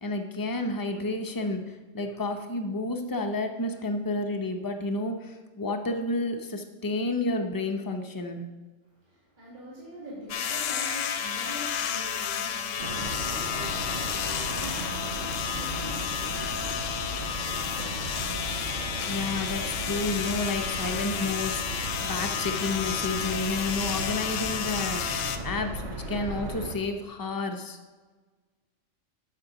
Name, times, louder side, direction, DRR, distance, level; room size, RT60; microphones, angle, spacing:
voice 1, 0.0-8.5 19.1-27.8, left 2 dB, 25° left, 4 dB, 0.5 m, -31 dB
voice 2, 8.9-17.1, equal, 40° right, -7 dB, 2.2 m, -44 dB
sound 1, 10.3-25.4, left 8 dB, 85° left, 1.0 m, -31 dB
sound 2, 12.8-26.8, right 2 dB, 60° right, 1.3 m, -36 dB
9.7 x 6.7 x 3.8 m, 1.3 s
omnidirectional pair, 1.3 m